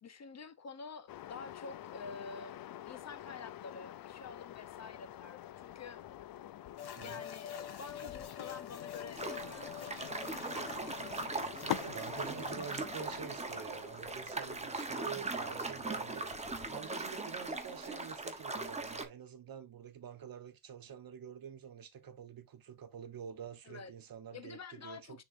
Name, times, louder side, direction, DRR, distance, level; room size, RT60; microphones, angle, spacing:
voice 1, 0.0-6.0 6.9-10.0 23.7-23.9 24.3-25.2, left 5 dB, 45° left, 0.8 m, -48 dB
sound 1, 1.1-16.7, left 12 dB, 65° left, 0.5 m, -47 dB
sound 2, 6.8-13.5, left 9 dB, 80° left, 1.4 m, -48 dB
voice 2, 7.0-7.3 11.6-25.2, right 7 dB, 65° right, 1.1 m, -47 dB
sound 3, 9.1-19.0, right 3 dB, 15° right, 0.9 m, -40 dB
9.9 x 3.9 x 2.6 m
wide cardioid pair, 170°, 38 cm